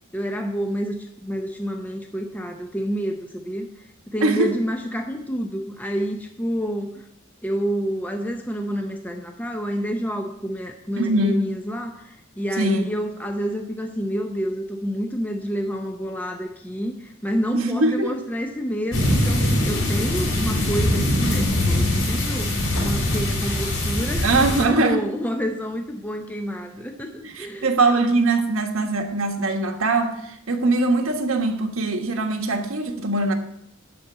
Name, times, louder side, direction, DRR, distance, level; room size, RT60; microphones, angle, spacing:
voice 1, 0.1-6.9 7.4-24.3 24.6-27.7, equal, 10° left, 3 dB, 0.7 m, -28 dB
voice 2, 4.2-4.5 11.0-11.4 12.6-12.9 17.5-18.1 24.2-25.0 27.2-33.3, right 2 dB, 90° right, 3 dB, 1.3 m, -22 dB
sound 1, 18.9-24.6, left 1 dB, 85° left, 3.5 m, -22 dB
11.5 x 4.4 x 7.9 m, 0.77 s
head